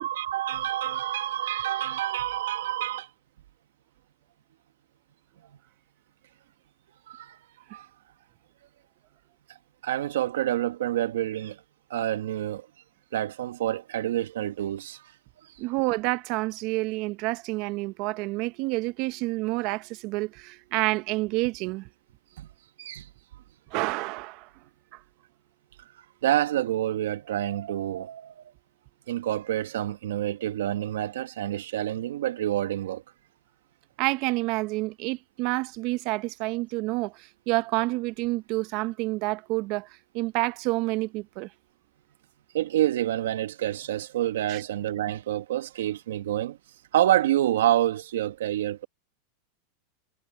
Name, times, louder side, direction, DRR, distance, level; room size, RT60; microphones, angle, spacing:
voice 1, 0.0-3.1 7.1-7.4 7.7-7.9 9.8-11.6 11.9-12.7 13.1-15.0 22.4-22.5 22.8-23.1 26.2-28.4 29.1-33.0 42.5-46.6 46.9-48.9, right 13 dB, 85° right, 1.6 m, -28 dB
voice 2, 15.6-21.9 23.7-24.5 24.9-25.0 34.0-39.9 40.1-41.5 44.5-44.6, right 22 dB, 55° right, 0.9 m, -28 dB
supercardioid pair, 120°, 0 cm